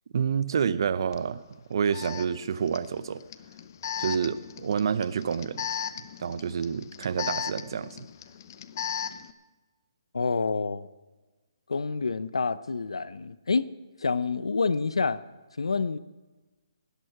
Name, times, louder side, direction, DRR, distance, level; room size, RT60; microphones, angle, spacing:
voice 1, 0.1-1.4 1.7-3.2 4.0-5.7 6.2-8.1, right 7 dB, 55° right, 0.7 m, -28 dB
Alarm, 1.1-1.2 1.9-9.3, left 9 dB, 40° left, 0.7 m, -37 dB
voice 2, 10.1-10.9 11.7-13.7 14.0-15.2 15.6-16.0, left 4 dB, 90° left, 0.7 m, -27 dB
17.5 x 11.0 x 6.0 m
hypercardioid pair, 160°, 3 cm